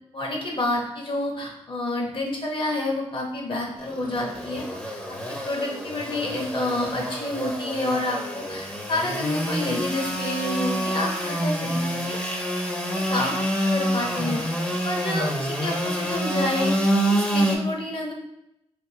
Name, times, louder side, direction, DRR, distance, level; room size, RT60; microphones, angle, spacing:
voice 1, 0.1-4.6 5.3-12.2 12.9-13.4 13.7-14.4 14.8-18.1, left 2 dB, 45° left, 0 dB, 1.0 m, -29 dB
Engine / Sawing, 3.8-17.6, equal, 10° left, 0.7 m, -27 dB
3.5 x 2.6 x 2.8 m, 0.82 s
cardioid pair, 55°, 12 cm